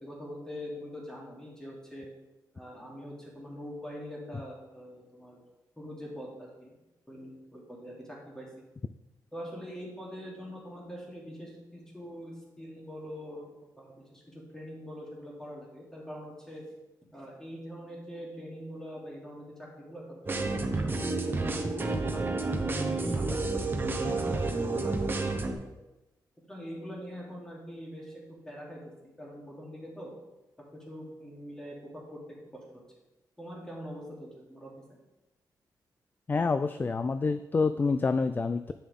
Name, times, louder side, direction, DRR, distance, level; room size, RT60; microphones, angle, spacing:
voice 1, 0.0-2.1 2.5-5.4 5.8-6.7 7.1-8.6 9.3-13.5 13.8-16.7 17.1-23.6 24.0-25.4 26.4-30.1 30.7-32.2 32.5-32.6 33.4-34.7, equal, 10° left, -4 dB, 3.1 m, -43 dB
sound 1, 20.3-25.5, right 3 dB, 30° right, 0.9 m, -30 dB
voice 2, 36.3-38.7, left 4 dB, 25° left, 11 dB, 0.3 m, -27 dB
9.4 x 6.8 x 3.6 m, 1.0 s
cardioid pair, 110°, 7 cm